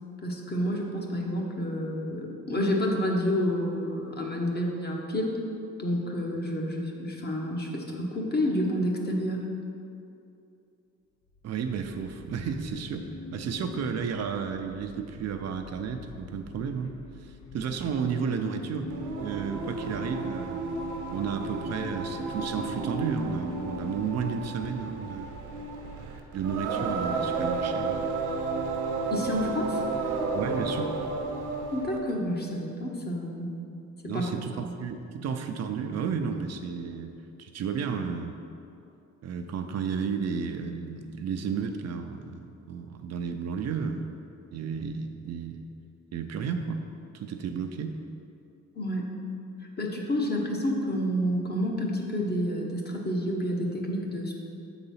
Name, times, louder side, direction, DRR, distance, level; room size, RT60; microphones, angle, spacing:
voice 1, 0.2-5.4 5.8-9.5 29.1-29.8 31.7-33.5 34.0-34.3 48.7-49.1 49.8-54.3, equal, 35° left, 0 dB, 1.2 m, -29 dB
sound 1, 11.3-20.6, left 2 dB, 65° left, 0.8 m, -45 dB
voice 2, 11.4-16.9 17.2-20.6 21.1-25.4 26.3-28.0 30.3-30.9 34.1-37.1 37.4-38.4 39.2-44.1 44.5-45.6 46.1-46.8 47.1-48.0, right 6 dB, 60° right, 5 dB, 0.6 m, -32 dB
Singing, 18.9-32.1, right 3 dB, 80° right, 1.0 m, -32 dB
7.3 x 4.0 x 5.6 m, 2.6 s
cardioid pair, 90°, 30 cm